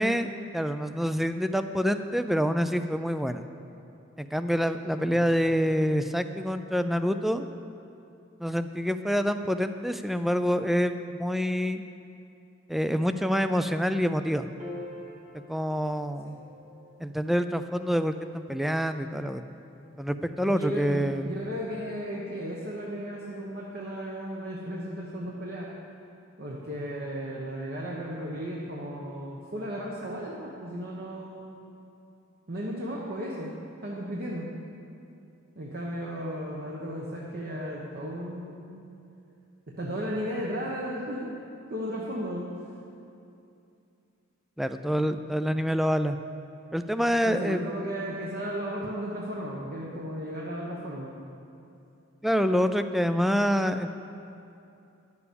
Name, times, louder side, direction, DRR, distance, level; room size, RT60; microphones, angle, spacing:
voice 1, 0.0-3.4 4.2-7.5 8.4-11.8 12.7-14.5 15.5-16.4 17.0-19.4 20.0-21.3 44.6-46.2 46.7-47.6 52.2-53.9, equal, ahead, 9 dB, 0.3 m, -26 dB
voice 2, 5.0-5.3 16.2-16.4 20.5-25.7 26.4-31.5 32.5-33.5 33.8-34.5 35.6-38.8 39.8-41.3 41.7-42.5 47.2-51.1, equal, 50° right, -4 dB, 1.1 m, -35 dB
Piano, 14.6-21.2, left 1 dB, 30° right, 1.8 m, -48 dB
11.0 x 6.9 x 6.9 m, 2.7 s
head